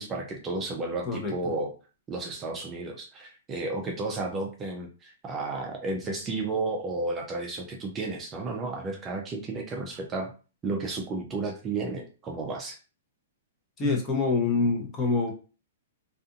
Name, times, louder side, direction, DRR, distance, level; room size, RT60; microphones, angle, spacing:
voice 1, 0.0-1.7 2.1-10.3 10.6-12.8, right 3 dB, 20° right, 1 dB, 0.5 m, -32 dB
voice 2, 13.8-15.3, left 3 dB, 25° left, 1 dB, 0.8 m, -25 dB
2.5 x 2.4 x 2.5 m, 0.35 s
hypercardioid pair, 135°, 0 cm